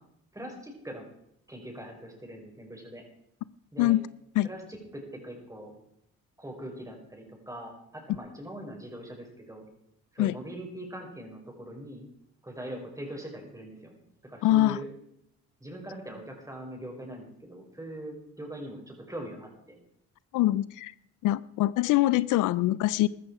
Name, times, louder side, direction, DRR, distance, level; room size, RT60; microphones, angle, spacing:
voice 1, 0.3-1.0 1.5-3.0 3.7-3.9 4.4-5.7 6.4-9.7 10.1-12.1 12.4-14.0 14.2-14.9 15.6-19.8, right 1 dB, 10° right, 1 dB, 5.5 m, -42 dB
voice 2, 14.4-14.8 20.3-20.9 21.2-23.1, left 15 dB, 85° left, 19 dB, 0.5 m, -24 dB
14.5 x 13.0 x 4.9 m, 0.74 s
cardioid pair, 90°, 30 cm